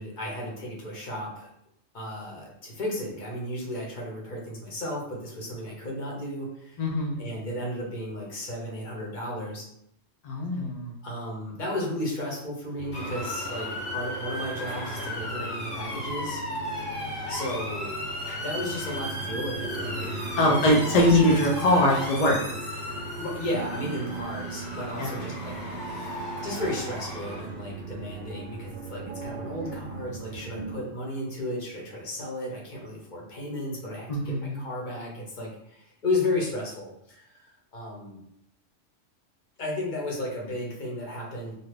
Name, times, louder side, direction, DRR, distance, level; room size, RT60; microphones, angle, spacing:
voice 1, 0.0-1.5 1.9-6.8 7.2-9.6 11.0-16.4 17.3-17.9 18.4-20.5 20.8-21.2 23.1-25.5 25.8-38.2 39.6-41.5, left 1 dB, 45° left, -3 dB, 0.9 m, -34 dB
voice 2, 6.8-7.3 10.2-10.9 20.4-22.5 25.0-25.3 34.1-34.6, left 1 dB, 60° left, -2 dB, 0.4 m, -22 dB
sound 1, 12.8-30.7, right 2 dB, 55° right, 0.6 m, -38 dB
Motor vehicle (road) / Siren, 12.9-27.4, left 1 dB, 85° left, 1.4 m, -36 dB
2.7 x 2.4 x 3.2 m, 0.75 s
omnidirectional pair, 1.3 m